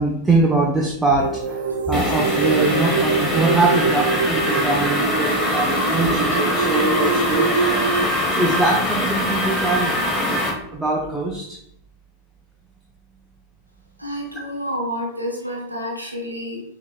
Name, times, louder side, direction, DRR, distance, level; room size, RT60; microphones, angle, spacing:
voice 1, 0.0-7.5 8.3-10.4 10.7-11.6, right 2 dB, 5° right, -3 dB, 0.6 m, -22 dB
sound 1, 1.2-8.0, right 4 dB, 65° right, 0.4 m, -24 dB
sound 2, 1.9-10.5, left 1 dB, 20° left, 1.1 m, -23 dB
voice 2, 14.0-16.6, equal, 90° right, -2 dB, 0.8 m, -29 dB
5.6 x 2.9 x 2.3 m, 0.73 s
figure-of-eight pair, 90°, 0 cm